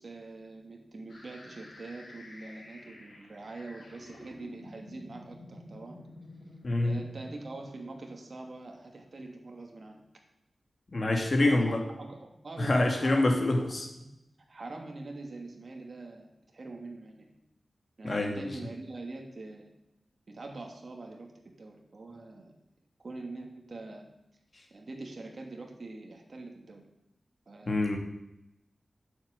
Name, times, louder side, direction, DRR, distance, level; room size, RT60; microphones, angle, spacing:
voice 1, 0.0-6.0 6.8-10.0 11.4-13.6 14.0-14.1 14.5-17.4 18.0-19.7 20.3-22.5 23.0-24.0 24.7-26.8 27.5-27.8, right 2 dB, 55° right, 2 dB, 2.5 m, -44 dB
sound 1, 1.1-9.0, left 1 dB, 80° left, 5.3 m, -51 dB
voice 2, 6.6-7.0 10.9-11.8 12.6-13.9 18.0-18.5 27.7-28.0, left 2 dB, 45° left, 2 dB, 2.6 m, -26 dB
9.2 x 8.2 x 8.6 m, 0.87 s
wide cardioid pair, 100°, 0 cm